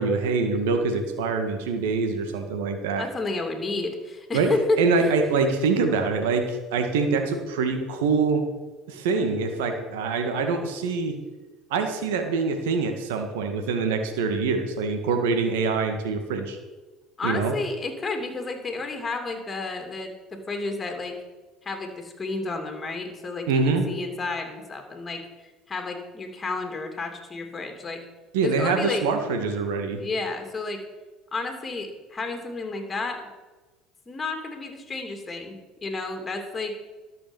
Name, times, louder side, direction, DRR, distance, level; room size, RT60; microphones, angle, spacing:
voice 1, 0.0-3.1 4.3-4.5 4.8-8.4 8.9-11.2 11.7-16.6 17.2-17.5 23.5-23.8 28.3-30.0, right 4 dB, 80° right, 6 dB, 1.7 m, -24 dB
voice 2, 3.0-4.8 17.2-21.1 21.6-25.2 25.7-28.0 28.4-29.0 30.0-30.8 31.3-33.2 34.1-36.7, left 3 dB, 25° left, 4 dB, 2.7 m, -31 dB
12.5 x 6.8 x 7.1 m, 1.2 s
hypercardioid pair, 80°, 0 cm